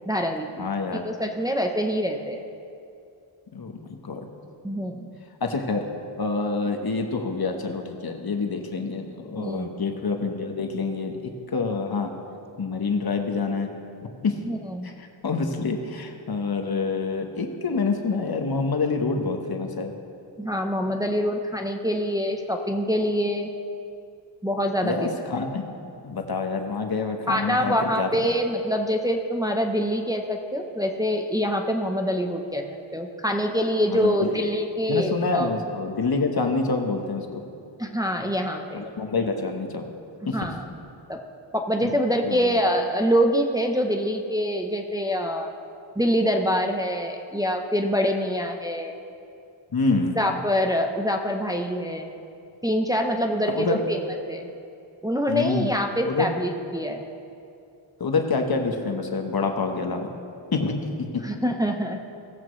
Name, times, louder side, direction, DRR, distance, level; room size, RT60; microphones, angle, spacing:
voice 1, 0.1-0.7 0.9-2.4 4.6-5.1 9.4-9.7 14.4-14.9 20.4-23.5 24.4-25.2 27.3-32.6 32.9-35.5 37.8-38.9 40.3-40.6 41.1-41.2 41.5-45.5 46.0-48.9 50.2-52.1 52.6-54.0 54.3-54.4 55.0-57.0 61.2-62.0, equal, 10° right, 2 dB, 0.8 m, -25 dB
voice 2, 0.6-1.0 3.5-4.2 5.4-5.8 6.2-12.1 12.6-13.7 14.2-14.4 14.8-19.9 24.8-25.6 26.0-28.3 33.9-34.4 34.9-37.3 38.7-39.8 40.3-40.4 41.8-42.0 42.2-42.6 49.7-50.2 53.5-53.8 55.3-55.7 56.0-56.3 58.0-60.1 60.5-61.2, left 4 dB, 50° left, 4 dB, 1.2 m, -27 dB
17.5 x 7.4 x 3.2 m, 2.5 s
cardioid pair, 55°, 47 cm